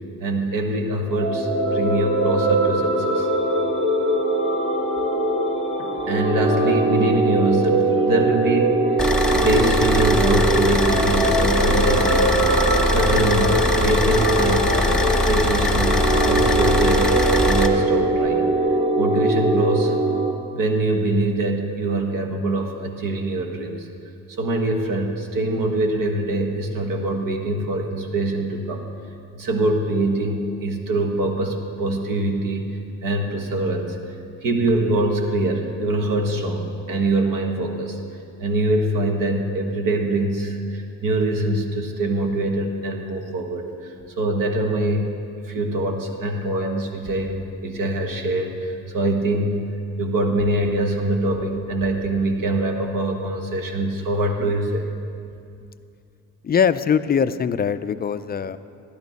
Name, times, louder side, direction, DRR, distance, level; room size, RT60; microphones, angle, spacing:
voice 1, 0.2-3.3 5.8-9.0 9.3-12.5 12.9-18.5 19.0-20.0 20.5-23.9 24.3-28.9 29.3-34.0 34.4-38.0 38.4-45.1 45.4-49.7 50.0-54.9, right 2 dB, 65° right, 3 dB, 1.5 m, -24 dB
sound 1, 1.0-20.3, right 1 dB, 35° right, 1.5 m, -21 dB
Car / Idling, 9.0-17.7, left 1 dB, ahead, 1.1 m, -21 dB
voice 2, 56.4-58.6, left 7 dB, 30° left, 13 dB, 0.4 m, -21 dB
12.5 x 11.5 x 4.1 m, 2.4 s
cardioid pair, 75°, 35 cm